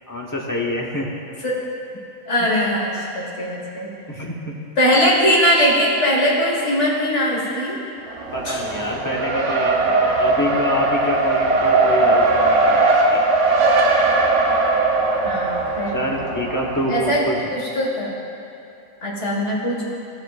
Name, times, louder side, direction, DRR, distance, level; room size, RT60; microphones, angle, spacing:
voice 1, 0.1-1.1 4.1-4.6 8.3-13.2 15.9-17.5, left 1 dB, 15° left, -2 dB, 0.8 m, -26 dB
voice 2, 2.3-3.9 4.8-7.7 8.5-8.6 15.2-16.0 16.9-17.2 17.5-18.1 19.0-19.8, equal, 60° left, -4 dB, 2.0 m, -20 dB
Race car auto racing, 8.1-17.2, right 2 dB, 65° right, 1.1 m, -19 dB
16.0 x 6.4 x 2.4 m, 2.7 s
omnidirectional pair, 1.4 m